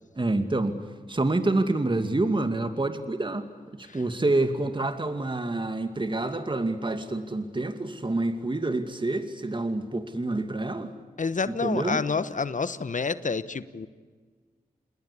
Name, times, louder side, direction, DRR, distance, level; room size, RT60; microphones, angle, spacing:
voice 1, 0.2-0.8 1.1-3.5 3.8-10.9 11.6-12.0, right 2 dB, 30° right, 8 dB, 2.3 m, -27 dB
voice 2, 11.2-13.9, left 4 dB, 55° left, 14 dB, 1.2 m, -28 dB
28.0 x 21.0 x 8.5 m, 1.5 s
cardioid pair, 45°, 15 cm